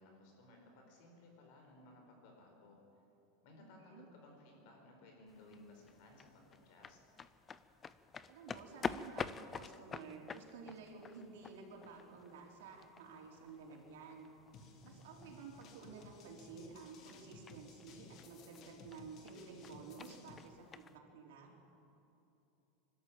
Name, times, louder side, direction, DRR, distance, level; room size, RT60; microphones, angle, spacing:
voice 1, 0.0-2.8 3.4-7.0, left 2 dB, 50° left, 2 dB, 4.8 m, -60 dB
voice 2, 3.6-4.1 8.3-14.3 14.8-21.5, right 4 dB, 85° right, 0 dB, 4.1 m, -53 dB
sound 1, 5.3-21.0, left 6 dB, 15° left, 0.4 m, -49 dB
sound 2, 14.5-20.4, left 4 dB, 30° left, 1.4 m, -58 dB
24.0 x 13.0 x 8.6 m, 3.0 s
supercardioid pair, 175°, 0 cm